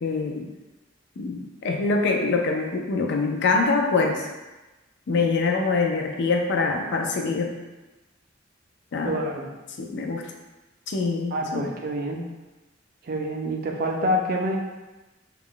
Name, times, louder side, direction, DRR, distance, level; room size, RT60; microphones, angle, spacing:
voice 1, 0.0-0.5 1.2-4.3 5.1-7.6 8.9-9.1 9.8-10.3 10.9-11.7, left 4 dB, 60° left, 2 dB, 0.4 m, -24 dB
voice 2, 9.0-9.5 11.3-12.3 13.0-14.6, equal, 50° right, 1 dB, 0.4 m, -27 dB
2.3 x 2.1 x 3.7 m, 1.1 s
head